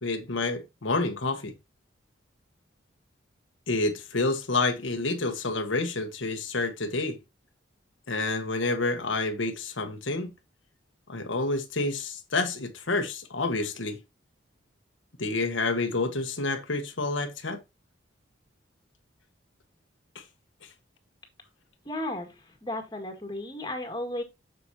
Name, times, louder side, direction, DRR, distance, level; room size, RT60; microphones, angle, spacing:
voice 1, 0.0-1.5 3.7-7.2 8.1-10.3 11.1-14.0 15.2-17.6 20.1-20.2, left 3 dB, 80° left, 1.4 m, -29 dB
voice 2, 21.9-24.2, left 1 dB, 20° left, 1.9 m, -34 dB
7.9 x 6.9 x 2.8 m
head